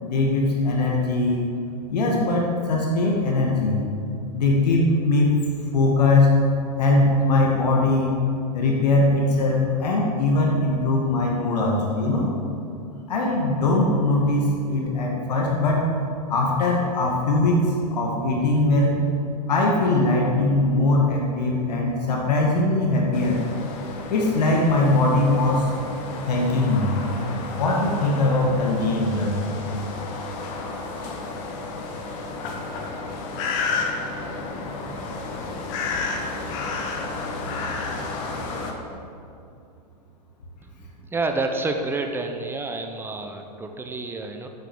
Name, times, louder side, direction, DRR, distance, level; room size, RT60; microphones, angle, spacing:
voice 1, 0.0-1.5 1.9-3.8 4.3-5.3 5.7-6.3 6.8-8.1 8.5-12.3 13.1-15.8 16.3-19.0 19.5-23.4 24.1-25.7 26.3-27.0 27.6-29.6, left 2 dB, 80° left, -1 dB, 2.1 m, -21 dB
sound 1, 23.1-38.7, left 3 dB, 50° left, 1.7 m, -32 dB
voice 2, 40.6-44.5, right 3 dB, 10° right, 5 dB, 1.0 m, -29 dB
8.3 x 8.3 x 8.0 m, 2.6 s
hypercardioid pair, 120°, 21 cm